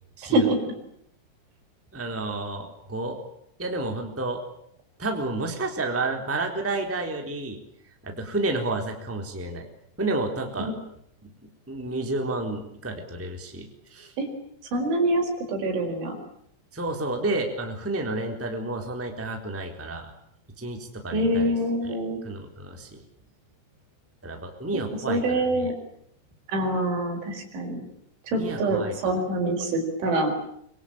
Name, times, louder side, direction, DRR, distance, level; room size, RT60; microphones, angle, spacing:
voice 1, 0.2-0.5 1.9-3.2 3.6-4.4 5.0-7.6 8.0-9.7 10.0-10.7 11.2-11.3 11.7-14.1 16.7-20.1 20.6-21.5 21.8-21.9 22.2-23.0 24.2-25.7 28.3-28.9, right 2 dB, 5° right, 3 dB, 2.9 m, -30 dB
voice 2, 14.7-16.2 21.1-22.2 25.1-25.7 26.5-27.8 28.3-30.3, right 1 dB, 65° right, 4 dB, 7.2 m, -25 dB
25.5 x 25.0 x 8.9 m, 0.72 s
omnidirectional pair, 5.9 m